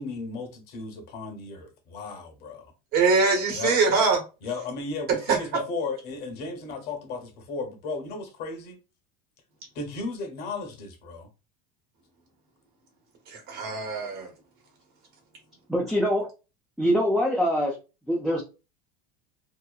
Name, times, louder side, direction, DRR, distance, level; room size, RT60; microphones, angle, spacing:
voice 1, 0.0-2.7 3.5-3.8 4.4-8.8 9.7-11.3, left 3 dB, 55° left, 1.1 m, -35 dB
voice 2, 2.9-4.2 5.3-5.6 13.3-14.3, right 4 dB, 50° right, 1.2 m, -23 dB
voice 3, 15.7-16.3 16.8-17.8 18.1-18.4, equal, ahead, 0.5 m, -23 dB
2.9 x 2.1 x 2.3 m
supercardioid pair, 125°, 20 cm